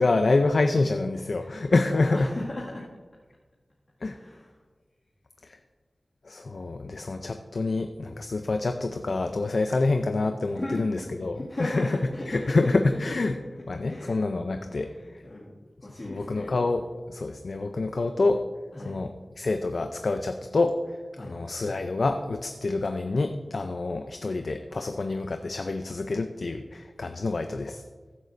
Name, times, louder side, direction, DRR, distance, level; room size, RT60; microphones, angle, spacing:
voice 1, 0.0-2.3 4.0-4.2 5.4-5.6 6.2-12.0 12.3-13.4 13.7-14.9 16.1-18.4 18.8-20.8 21.2-27.8, left 3 dB, 70° left, 7 dB, 0.5 m, -27 dB
voice 2, 1.4-2.8 4.1-4.5 10.5-10.8 11.3-12.6 12.9-13.1 13.9-14.2 14.7-15.5 15.8-16.5 18.7-19.0 21.2-21.4, left 1 dB, 45° left, -7 dB, 2.0 m, -36 dB
16.0 x 9.4 x 2.6 m, 1.4 s
wide cardioid pair, 60°, 0 cm